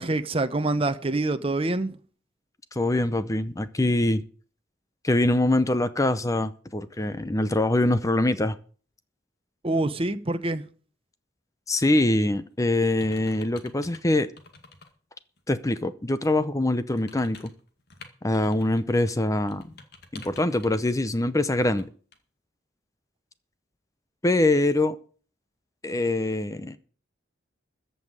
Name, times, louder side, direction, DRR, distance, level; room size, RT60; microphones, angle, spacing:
voice 1, 0.0-2.0 9.6-10.6, right 2 dB, 30° right, 0.9 m, -26 dB
voice 2, 2.7-4.2 5.0-8.6 11.7-14.3 15.5-17.5 18.2-19.7 20.1-21.9 24.2-25.0 25.8-26.8, left 1 dB, 15° left, 0.6 m, -24 dB
sound 1, 12.0-12.2 12.7-14.0 14.4-14.9 15.4-15.5 16.9-18.8 19.1-20.9 21.5-21.8 22.1-22.2, left 3 dB, 60° left, 2.1 m, -48 dB
14.5 x 5.5 x 8.9 m
head